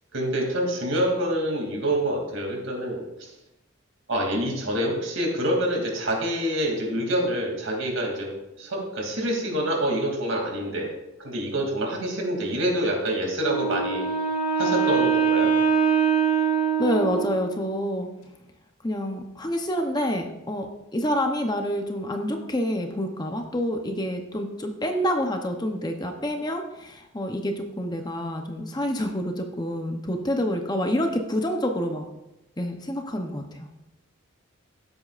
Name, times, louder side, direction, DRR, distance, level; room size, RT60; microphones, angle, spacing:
voice 1, 0.1-3.3 4.1-8.3 8.6-10.9 11.2-14.1 14.6-15.5, right 1 dB, 75° right, 0 dB, 2.8 m, -26 dB
Wind instrument woodwind instrument, 13.4-17.6, right 6 dB, 40° left, 3.0 m, -23 dB
voice 2, 16.8-18.1 18.8-20.7 20.9-32.0 32.6-33.7, equal, 20° left, 4 dB, 0.8 m, -27 dB
16.0 x 8.0 x 2.5 m, 0.94 s
head